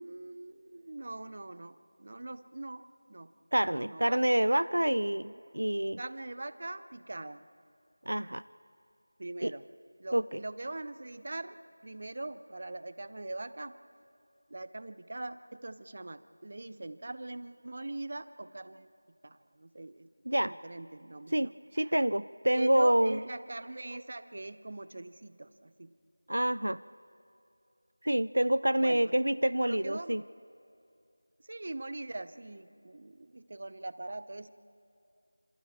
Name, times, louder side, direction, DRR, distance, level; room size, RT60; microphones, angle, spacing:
voice 1, 0.0-3.3 3.6-4.2 6.0-7.4 9.2-9.7 10.0-11.6 11.8-13.8 14.5-18.9 19.2-20.1 20.5-21.9 22.5-25.9 28.8-29.1 29.6-30.2 31.4-34.5, right 2 dB, 40° right, 14 dB, 0.7 m, -42 dB
voice 2, 3.5-6.0 8.1-8.4 9.4-9.5 10.1-10.4 20.3-20.5 21.3-23.2 26.3-26.8 28.0-30.2, right 1 dB, 80° right, 17 dB, 0.4 m, -27 dB
27.0 x 27.0 x 3.6 m, 2.6 s
figure-of-eight pair, 175°, 0 cm